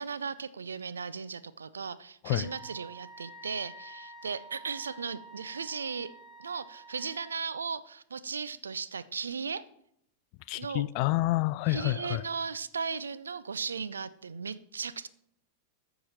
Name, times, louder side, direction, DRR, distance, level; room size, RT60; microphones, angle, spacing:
voice 1, 0.0-6.1 6.4-9.6 10.6-10.8 11.7-15.1, right 5 dB, 70° right, 0.4 m, -36 dB
Wind instrument woodwind instrument, 2.4-7.4, right 2 dB, 10° right, 1.3 m, -49 dB
voice 2, 10.5-12.2, left 18 dB, 45° left, 0.3 m, -28 dB
14.0 x 4.8 x 4.1 m
figure-of-eight pair, 90°, 0 cm